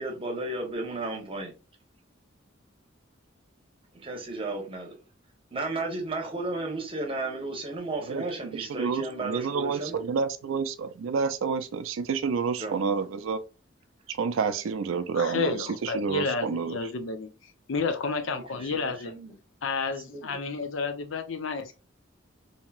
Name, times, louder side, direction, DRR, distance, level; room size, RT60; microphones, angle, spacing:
voice 1, 0.0-1.5 3.9-5.0 5.5-10.0 12.6-12.8 18.3-19.3 20.1-20.4, right 2 dB, 30° right, 0.9 m, -34 dB
voice 2, 8.5-13.4 14.1-16.8, right 5 dB, 85° right, 0.4 m, -29 dB
voice 3, 15.1-17.3 17.7-19.1 19.6-21.8, left 4 dB, 70° left, 0.5 m, -31 dB
2.9 x 2.7 x 2.3 m
head